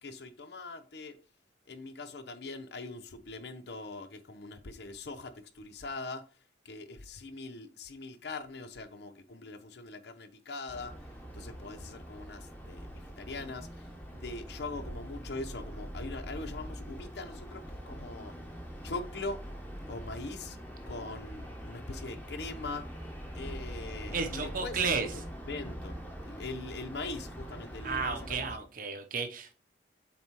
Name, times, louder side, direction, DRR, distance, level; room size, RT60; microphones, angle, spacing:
voice 1, 0.0-1.1 1.7-6.2 6.6-10.9 11.3-13.7 14.1-18.3 18.8-19.4 19.9-20.6 20.9-22.8 23.3-25.1 25.5-28.7, left 3 dB, 65° left, 0.7 m, -42 dB
sound 1, 10.7-28.6, equal, 10° left, 1.1 m, -43 dB
voice 2, 24.1-25.1 27.8-29.5, right 5 dB, 50° right, 0.9 m, -33 dB
7.1 x 4.3 x 3.0 m
head